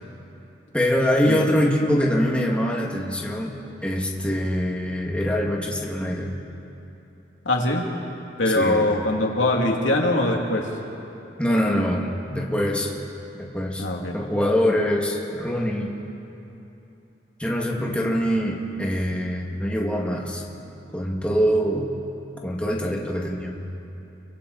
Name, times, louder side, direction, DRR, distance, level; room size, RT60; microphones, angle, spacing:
voice 1, 0.7-6.3 8.5-9.0 11.4-12.9 13.4-13.9 14.1-15.9 17.4-20.4 20.9-21.9 22.4-23.6, equal, 5° left, -2 dB, 2.2 m, -24 dB
voice 2, 7.4-7.9 8.4-10.7 13.8-14.1, left 1 dB, 90° left, -1 dB, 2.8 m, -22 dB
29.5 x 24.0 x 4.2 m, 2.9 s
head